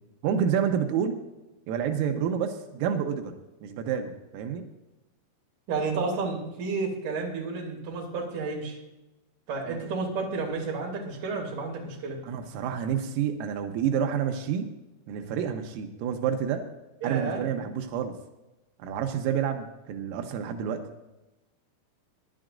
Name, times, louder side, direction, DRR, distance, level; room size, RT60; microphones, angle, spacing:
voice 1, 0.2-1.2 1.7-3.3 3.6-4.6 9.7-9.8 12.2-14.7 15.1-16.6 17.0-18.1 18.8-20.8, right 8 dB, 90° right, 5 dB, 3.6 m, -28 dB
voice 2, 5.7-8.8 9.5-12.2 17.0-17.4, right 4 dB, 45° right, -1 dB, 3.8 m, -31 dB
23.0 x 11.0 x 2.6 m, 1.0 s
omnidirectional pair, 5.8 m